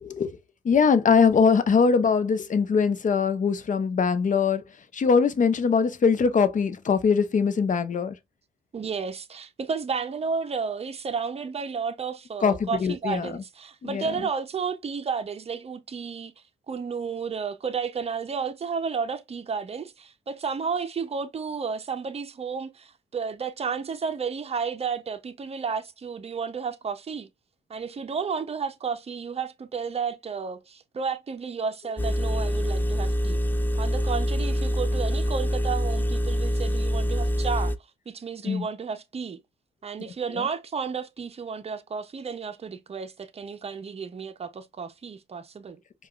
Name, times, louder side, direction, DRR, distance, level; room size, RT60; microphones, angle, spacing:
voice 1, 0.0-0.4 0.6-4.6 4.9-8.1 12.4-13.3 13.8-14.1 38.4-38.7, left 5 dB, 45° left, 0.7 m, -22 dB
voice 2, 8.7-16.3 16.7-27.3 27.7-33.4 33.8-37.7 38.1-39.4 39.8-45.8, right 5 dB, 35° right, 0.7 m, -32 dB
Engine, 32.0-37.8, equal, 10° left, 0.4 m, -25 dB
4.8 x 2.4 x 2.4 m
cardioid pair, 75°, 18 cm